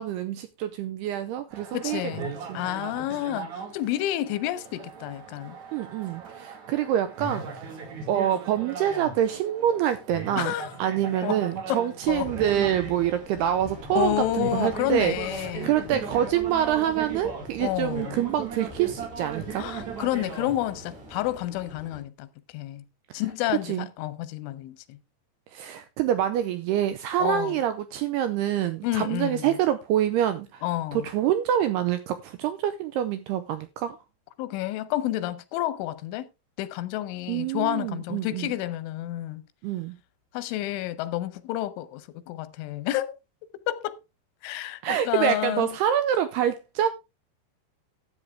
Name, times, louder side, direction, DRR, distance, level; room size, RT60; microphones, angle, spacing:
voice 1, 0.0-2.0 2.5-3.0 5.7-7.7 8.1-19.7 23.1-23.2 23.6-23.9 25.5-30.6 30.9-34.0 37.3-38.5 39.6-40.0 44.8-46.9, right 10 dB, 85° right, 2.3 m, -26 dB
sound 1, 1.5-21.3, right 6 dB, 50° right, 2.8 m, -39 dB
voice 2, 1.7-5.5 10.4-10.7 11.2-11.4 11.7-11.8 12.1-12.3 14.0-15.8 17.6-18.2 19.6-22.3 22.5-22.8 23.1-25.0 27.2-27.6 28.8-29.5 30.6-31.1 34.4-36.3 36.6-39.4 40.3-43.1 43.7-44.0 44.4-45.7, left 14 dB, 90° left, 3.3 m, -30 dB
sound 2, 12.0-22.0, left 1 dB, 5° right, 1.1 m, -44 dB
12.5 x 8.4 x 3.4 m
omnidirectional pair, 5.4 m